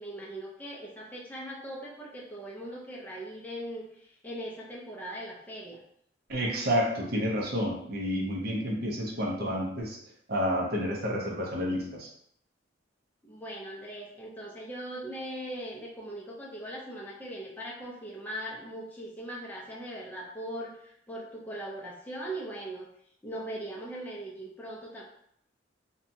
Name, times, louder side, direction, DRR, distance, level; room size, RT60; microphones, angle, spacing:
voice 1, 0.0-5.8 13.2-22.9 23.2-25.0, right 1 dB, 10° left, -4 dB, 0.5 m, -40 dB
voice 2, 6.3-10.0 10.3-12.1, equal, 55° right, -2 dB, 0.7 m, -30 dB
2.8 x 2.2 x 2.6 m, 0.71 s
head